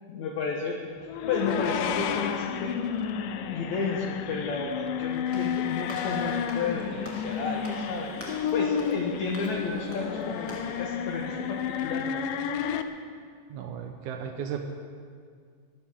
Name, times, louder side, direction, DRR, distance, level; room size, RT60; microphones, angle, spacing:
voice 1, 0.1-0.8 1.3-2.8 3.5-12.2, left 4 dB, 60° left, 0 dB, 2.2 m, -32 dB
sound 1, 1.1-12.8, left 8 dB, 75° left, 2.0 m, -31 dB
Walk footsteps / Slam, 5.3-10.9, equal, 5° left, 1.3 m, -45 dB
sound 2, 5.6-11.8, right 1 dB, 25° left, 3.1 m, -54 dB
voice 2, 13.5-14.6, right 8 dB, 75° right, 3 dB, 1.9 m, -35 dB
24.0 x 14.0 x 3.7 m, 2.1 s
omnidirectional pair, 4.4 m